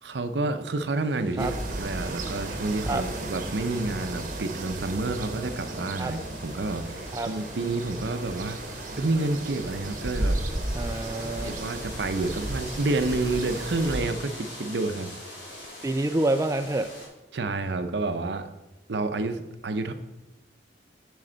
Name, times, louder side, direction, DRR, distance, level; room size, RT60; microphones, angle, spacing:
voice 1, 0.0-8.6 9.0-10.4 11.4-15.1 17.3-18.5 18.9-19.9, right 2 dB, 70° right, 9 dB, 0.6 m, -29 dB
sound 1, 0.8-17.1, left 1 dB, 80° left, 3.2 m, -44 dB
sound 2, 1.4-14.0, right 2 dB, 45° right, 0.9 m, -34 dB
voice 2, 10.8-11.5 15.8-16.9, right 2 dB, 15° right, 7 dB, 0.3 m, -27 dB
7.6 x 7.1 x 3.9 m, 1.0 s
head